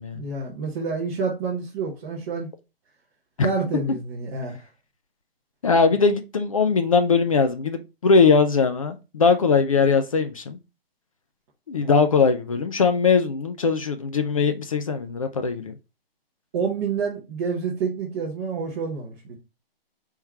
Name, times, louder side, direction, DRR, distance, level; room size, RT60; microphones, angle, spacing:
voice 1, 0.1-2.5 3.4-4.6 11.8-11.9 16.5-19.4, right 4 dB, 15° right, 0.6 m, -28 dB
voice 2, 5.6-10.6 11.7-15.7, left 5 dB, 35° left, 0.4 m, -20 dB
3.6 x 2.9 x 4.5 m
hypercardioid pair, 155°, 30 cm